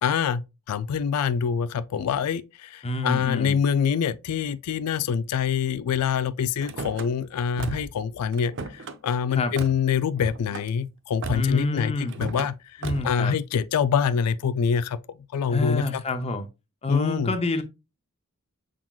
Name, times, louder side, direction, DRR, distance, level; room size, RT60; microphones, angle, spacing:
voice 1, 0.0-12.5 13.0-15.0 15.3-16.0 16.9-17.3, left 7 dB, 90° left, 0.4 m, -25 dB
voice 2, 2.8-3.6 9.3-9.5 11.3-12.2 12.8-13.3 15.5-16.5 16.8-17.6, left 3 dB, 25° left, 0.6 m, -27 dB
Car / Slam, 6.6-7.1 7.6-8.0 8.3-9.0 9.6-9.8 10.2-10.7 11.2-11.6 12.1-12.5 12.8-13.2, right 3 dB, 55° right, 0.6 m, -34 dB
5.9 x 3.8 x 2.3 m
head